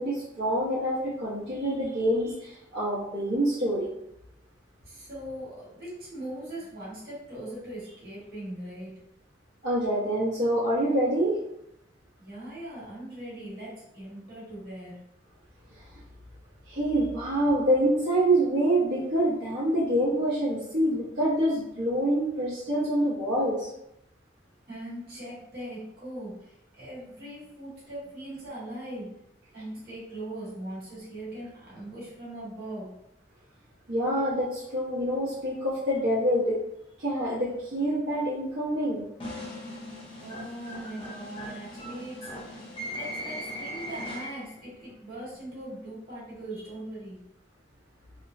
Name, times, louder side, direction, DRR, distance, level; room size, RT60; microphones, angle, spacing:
voice 1, 0.0-3.9 9.6-11.4 16.7-23.7 33.9-36.6 37.0-39.1, right 1 dB, 75° right, -12 dB, 0.9 m, -26 dB
voice 2, 4.8-8.9 12.2-15.0 24.7-29.1 29.5-32.9 40.1-47.2, right 1 dB, 55° right, -7 dB, 1.4 m, -40 dB
sound 1, 39.2-44.6, equal, 30° left, 0.7 m, -39 dB
3.0 x 2.1 x 2.6 m, 0.80 s
head